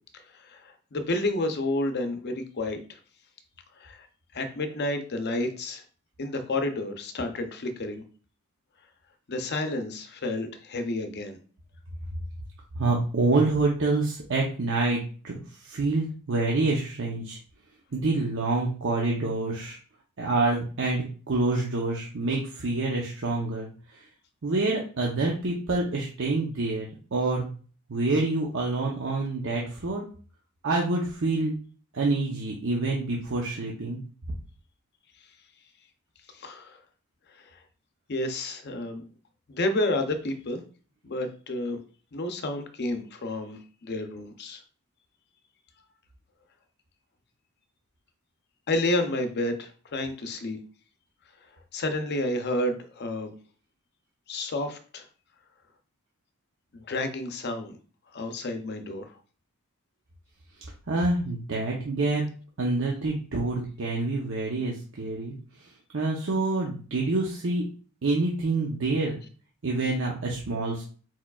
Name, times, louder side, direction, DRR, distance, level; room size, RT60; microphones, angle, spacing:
voice 1, 0.4-2.8 3.8-4.1 4.3-5.8 6.2-8.0 9.3-11.4 36.4-36.8 38.1-39.0 39.5-40.6 41.0-41.8 42.1-44.6 48.7-50.6 51.7-53.3 54.3-55.0 56.7-57.8 58.1-59.1, left 2 dB, 50° left, 7 dB, 0.6 m, -30 dB
voice 2, 12.7-15.4 15.6-17.4 17.9-19.8 20.2-24.0 24.4-27.5 27.9-30.1 30.6-31.6 31.9-34.0 60.9-62.2 62.6-65.3 65.9-67.6 68.0-69.2 69.6-70.8, right 2 dB, 60° right, -1 dB, 0.7 m, -27 dB
4.6 x 4.3 x 2.3 m, 0.40 s
head